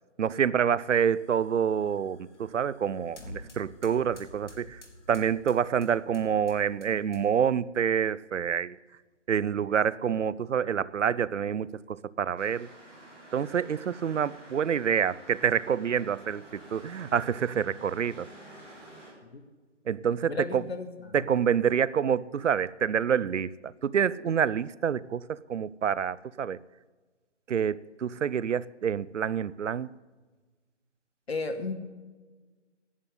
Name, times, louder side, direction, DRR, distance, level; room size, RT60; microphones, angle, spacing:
voice 1, 0.2-4.8 5.1-8.8 9.3-12.7 13.3-18.3 19.9-20.6 21.1-26.6 27.5-29.9, right 8 dB, 85° right, 0.6 m, -27 dB
sound 1, 0.8-7.5, left 1 dB, 75° left, 3.6 m, -51 dB
sound 2, 12.3-19.1, right 1 dB, ahead, 1.1 m, -50 dB
voice 2, 20.3-21.2 31.3-31.7, left 3 dB, 60° left, 1.7 m, -34 dB
11.0 x 8.3 x 9.2 m
hypercardioid pair, 180°, 36 cm